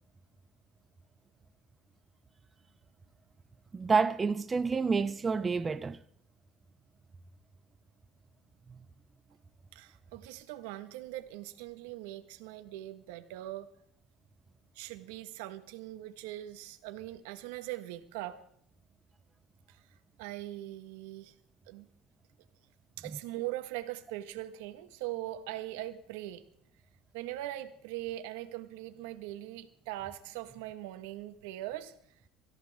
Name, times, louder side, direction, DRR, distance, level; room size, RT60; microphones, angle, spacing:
voice 1, 3.7-6.0, right 5 dB, 15° right, 0.6 m, -28 dB
voice 2, 9.7-13.7 14.7-18.4 19.7-19.8 20.2-21.3 21.7-21.9 23.0-26.4 27.1-31.9, right 15 dB, 85° right, 1.6 m, -41 dB
24.5 x 14.0 x 3.7 m
cardioid pair, 145°, 0 cm